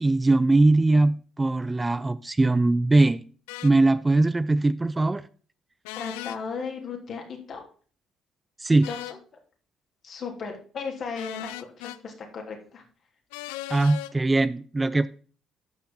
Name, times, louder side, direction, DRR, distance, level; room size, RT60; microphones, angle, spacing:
voice 1, 0.0-3.2 3.6-5.2 8.6-8.9 13.7-15.1, right 2 dB, 20° right, 0.5 m, -21 dB
sound 1, 3.5-3.7 5.8-6.4 8.8-9.2 11.1-12.0 13.3-14.1, left 17 dB, 90° left, 0.4 m, -37 dB
voice 2, 5.9-7.6 8.9-9.0 10.0-11.5 11.8-12.8, left 5 dB, 55° left, 3.1 m, -35 dB
12.0 x 5.6 x 3.9 m
supercardioid pair, 60°, 0 cm